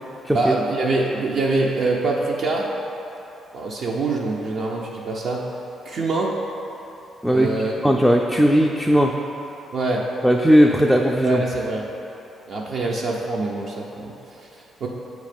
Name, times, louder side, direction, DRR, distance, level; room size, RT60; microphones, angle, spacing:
voice 1, 0.3-2.7 3.5-5.5 5.8-6.4 7.3-8.0 9.7-10.1 11.2-11.9 12.5-14.9, right 2 dB, 60° right, -2 dB, 0.6 m, -25 dB
voice 2, 7.8-9.2 10.2-11.4, equal, ahead, 0 dB, 0.3 m, -17 dB
7.4 x 3.1 x 5.0 m, 2.9 s
cardioid pair, 90°, 0 cm